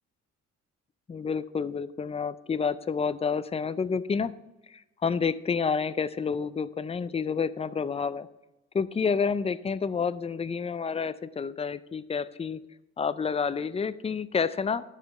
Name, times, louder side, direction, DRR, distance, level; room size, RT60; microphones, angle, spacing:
voice 1, 1.1-4.3 4.7-8.3 8.7-12.6 13.0-14.8, left 5 dB, 20° left, 15 dB, 0.4 m, -29 dB
12.0 x 5.0 x 5.6 m, 0.96 s
cardioid pair, 90°, 30 cm